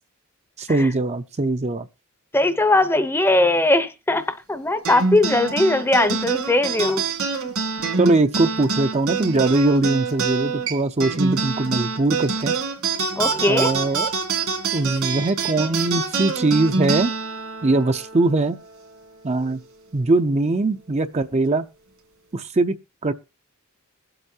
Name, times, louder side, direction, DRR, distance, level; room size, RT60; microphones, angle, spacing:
voice 1, 0.6-1.9 8.0-12.5 13.5-14.1 14.7-17.1 17.6-18.6 19.2-19.6 19.9-21.7 22.3-23.1, right 2 dB, 30° right, 0.5 m, -21 dB
voice 2, 2.3-7.0 13.2-13.7, left 2 dB, 10° left, 0.7 m, -19 dB
sound 1, 4.8-19.6, right 4 dB, 75° right, 2.4 m, -26 dB
21.5 x 8.0 x 2.8 m
head